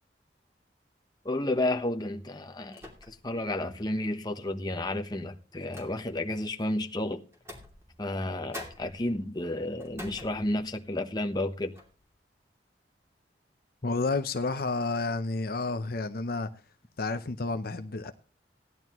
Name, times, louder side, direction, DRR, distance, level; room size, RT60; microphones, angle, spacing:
voice 1, 1.2-2.8 3.1-7.2 8.0-11.7 13.8-13.9, left 1 dB, 25° left, 1.0 m, -31 dB
sound 1, 1.4-1.7 2.7-3.4 3.8-3.9 4.9-6.3 7.3-8.2 8.5-10.9 11.3-11.4 11.7-12.1, left 1 dB, 15° right, 2.7 m, -47 dB
voice 2, 13.8-16.5 17.0-18.1, left 3 dB, 55° left, 0.7 m, -30 dB
16.5 x 11.0 x 3.0 m
head